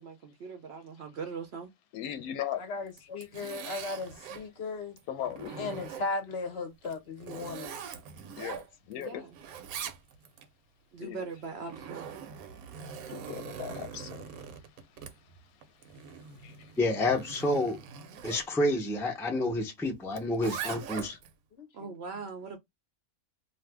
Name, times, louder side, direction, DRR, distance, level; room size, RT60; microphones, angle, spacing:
voice 1, 0.0-1.7 9.0-9.3 10.9-12.1 21.7-22.6, right 5 dB, 60° right, 0.7 m, -41 dB
voice 2, 1.9-2.6 5.1-5.7 8.4-9.2 11.0-11.2 13.1-14.3 16.4-16.7, left 10 dB, 90° left, 1.1 m, -38 dB
voice 3, 2.6-5.0 5.6-7.8 19.3-19.5 21.5-21.9, left 3 dB, 55° left, 0.8 m, -37 dB
Zipper (clothing), 2.9-4.5 5.0-6.3 6.8-9.1 9.3-10.5 11.3-18.5 20.1-21.3, right 7 dB, 80° right, 1.0 m, -42 dB
voice 4, 16.8-17.8 18.2-21.2, left 1 dB, 5° left, 0.4 m, -29 dB
2.6 x 2.5 x 3.3 m
omnidirectional pair, 1.5 m